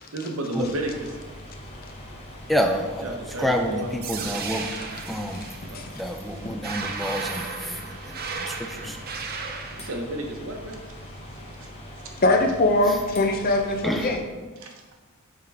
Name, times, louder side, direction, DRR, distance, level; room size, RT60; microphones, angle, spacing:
voice 1, 0.1-1.1 3.0-3.9 5.7-5.8 9.8-11.1 11.6-11.7 14.6-14.7, right 1 dB, 80° right, 2 dB, 1.0 m, -32 dB
sound 1, 0.5-14.2, equal, 30° left, 1.0 m, -42 dB
voice 2, 2.5-4.7 5.1-5.4 5.9-9.0 12.9-13.0 13.8-14.2, equal, ahead, 4 dB, 0.3 m, -28 dB
sound 2, 4.0-10.0, right 5 dB, 50° right, 0.6 m, -35 dB
voice 3, 12.2-14.2, left 2 dB, 45° left, 4 dB, 0.7 m, -21 dB
8.3 x 3.8 x 3.5 m, 1.3 s
head